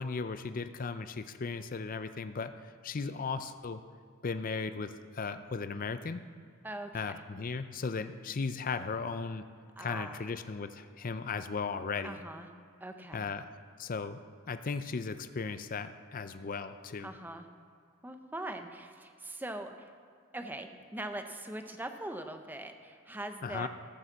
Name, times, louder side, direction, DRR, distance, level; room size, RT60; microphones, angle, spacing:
voice 1, 0.0-2.5 2.8-3.8 4.2-6.2 6.9-9.4 9.8-12.2 13.1-13.5 13.8-17.1 23.4-23.7, left 4 dB, 40° left, 10 dB, 0.5 m, -36 dB
voice 2, 6.6-7.2 9.8-10.2 12.0-12.5 12.8-13.3 17.0-17.5 18.0-19.9 20.3-23.7, right 1 dB, 10° right, 6 dB, 0.7 m, -42 dB
14.0 x 6.4 x 7.2 m, 2.2 s
head